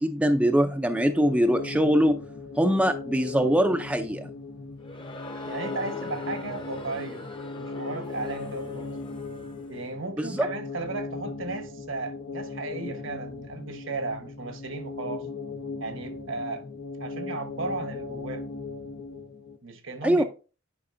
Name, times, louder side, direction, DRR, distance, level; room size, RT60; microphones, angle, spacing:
voice 1, 0.0-2.2 2.6-4.3 10.2-10.5 20.0-20.2, equal, 5° right, 0.5 m, -22 dB
sound 1, 0.8-19.6, left 3 dB, 75° left, 0.9 m, -38 dB
Crowd, 4.8-9.8, left 1 dB, 25° left, 0.8 m, -42 dB
voice 2, 5.4-7.2 7.5-9.0 9.7-15.3 15.8-16.7 17.0-18.5 19.6-20.2, right 3 dB, 70° right, 1.1 m, -35 dB
9.8 x 5.2 x 2.6 m
head